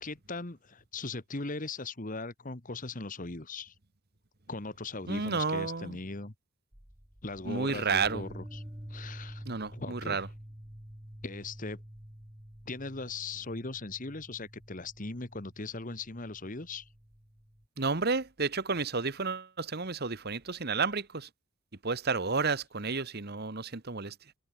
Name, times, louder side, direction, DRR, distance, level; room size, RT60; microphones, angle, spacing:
voice 1, 0.0-3.7 4.5-6.3 7.2-8.6 8.9-9.4 9.7-10.2 11.2-11.8 12.7-16.9, left 3 dB, 35° left, 1.4 m, -39 dB
voice 2, 5.1-6.0 7.4-8.2 9.4-10.3 17.8-21.3 21.8-24.1, right 4 dB, 45° right, 1.3 m, -31 dB
sound 1, 6.7-17.7, equal, 15° right, 2.0 m, -48 dB
head